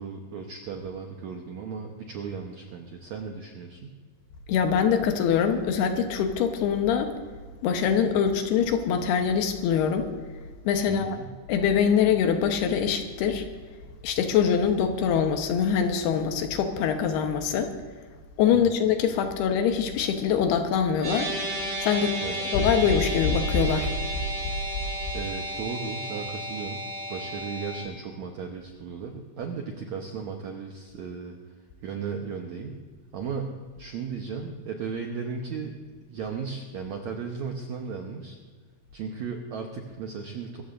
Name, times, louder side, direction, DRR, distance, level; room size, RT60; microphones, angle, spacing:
voice 1, 0.0-3.9 10.9-11.3 18.5-18.8 22.2-22.4 25.1-26.8 27.1-31.4 31.8-32.8 33.1-35.8 36.1-38.4 38.9-40.6, right 5 dB, 80° right, 2 dB, 1.6 m, -35 dB
voice 2, 4.5-7.1 7.6-10.1 10.7-11.2 11.5-13.4 14.0-17.7 18.4-21.3 21.8-22.2 22.5-23.9, left 7 dB, 80° left, 6 dB, 3.0 m, -23 dB
sound 1, 21.0-27.8, right 1 dB, 35° right, 5.5 m, -33 dB
24.5 x 14.5 x 2.6 m, 1.5 s
omnidirectional pair, 4.7 m